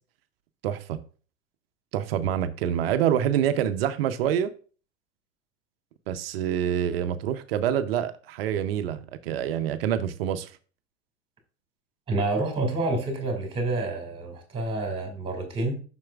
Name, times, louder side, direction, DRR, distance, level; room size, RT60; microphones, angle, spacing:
voice 1, 0.6-1.0 1.9-4.5 6.1-10.5, right 10 dB, 50° right, 0.7 m, -26 dB
voice 2, 12.1-15.8, right 2 dB, 15° right, 2.1 m, -28 dB
7.4 x 6.0 x 2.4 m
figure-of-eight pair, 100°, 40 cm